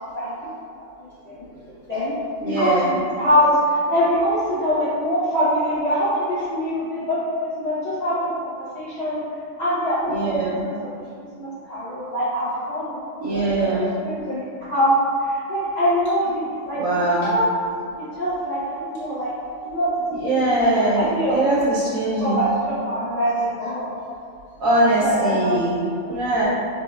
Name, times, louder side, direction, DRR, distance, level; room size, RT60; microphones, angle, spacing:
voice 1, 0.1-0.5 1.3-1.4 1.9-2.1 2.4-9.2 9.6-10.9 11.4-13.0 13.3-14.4 14.7-17.5 18.0-19.3 19.6-19.9 20.2-21.7 22.2-23.9 25.0-25.6 26.0-26.2, equal, 60° left, -11 dB, 0.4 m, -24 dB
voice 2, 2.4-2.9 10.1-10.6 13.2-13.9 15.5-15.6 16.7-17.3 18.1-18.2 20.1-22.4 24.0-24.1 24.6-26.4, right 2 dB, 90° right, -8 dB, 1.0 m, -22 dB
3.7 x 2.1 x 2.3 m, 2.4 s
omnidirectional pair, 1.4 m